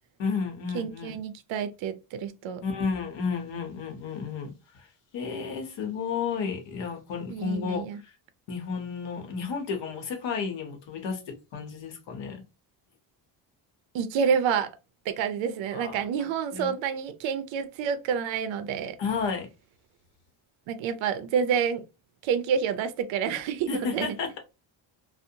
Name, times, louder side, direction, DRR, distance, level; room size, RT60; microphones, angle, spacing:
voice 1, 0.2-1.2 2.6-4.9 5.1-7.9 8.5-12.4 15.7-16.7 19.0-19.5 23.7-24.4, left 5 dB, 65° left, 0.9 m, -32 dB
voice 2, 0.7-2.6 7.3-8.0 13.9-14.7 15.1-19.0 20.7-21.8 22.2-24.2, right 7 dB, 70° right, 0.5 m, -28 dB
2.5 x 2.1 x 2.7 m
cardioid pair, 170°, 48 cm